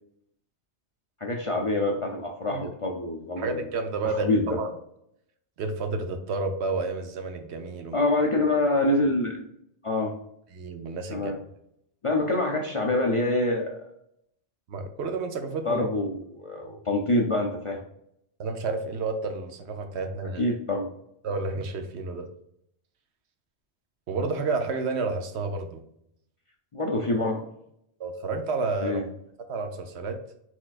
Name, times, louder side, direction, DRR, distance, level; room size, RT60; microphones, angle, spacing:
voice 1, 1.2-3.6 4.2-4.5 7.9-9.4 9.8-10.1 11.1-11.4 12.0-13.9 15.6-17.8 20.4-20.9 26.7-27.5 28.8-29.0, left 2 dB, 40° left, 0 dB, 0.5 m, -26 dB
voice 2, 3.4-4.7 5.6-8.0 10.5-11.3 14.7-15.9 18.4-20.4 21.2-22.3 24.1-25.8 28.0-29.0 29.5-30.2, right 3 dB, 75° right, 6 dB, 0.9 m, -30 dB
4.4 x 4.4 x 2.4 m, 0.75 s
omnidirectional pair, 1.1 m